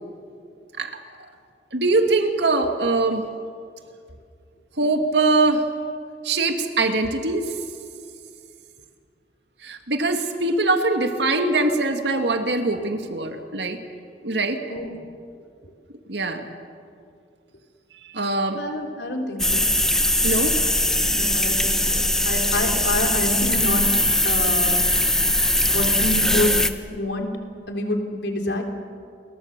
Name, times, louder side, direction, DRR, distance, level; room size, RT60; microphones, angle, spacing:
voice 1, 1.7-3.2 4.8-5.6 6.2-7.5 9.6-13.8 14.2-14.6 16.1-16.5 18.0-18.6 20.2-20.6, right 2 dB, 70° right, 6 dB, 2.2 m, -22 dB
voice 2, 18.6-19.7 21.1-23.8 24.2-24.8 25.7-26.6 26.9-27.3 27.7-28.6, left 1 dB, 75° left, 3 dB, 3.5 m, -27 dB
sound 1, 19.4-26.7, left 1 dB, 5° left, 1.0 m, -21 dB
29.5 x 22.5 x 6.8 m, 2.3 s
head